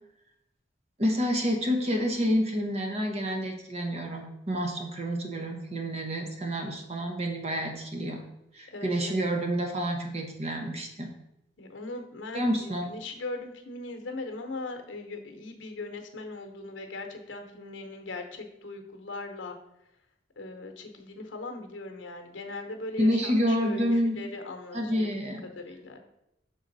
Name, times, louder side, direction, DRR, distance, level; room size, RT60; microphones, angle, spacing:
voice 1, 1.0-8.2 8.6-11.1 12.3-12.9 23.0-24.3 24.7-25.4, equal, 35° right, 3 dB, 0.9 m, -28 dB
voice 2, 8.7-9.2 11.6-19.6 20.4-26.0, left 2 dB, 85° left, 5 dB, 0.9 m, -39 dB
6.3 x 3.9 x 3.9 m, 0.84 s
head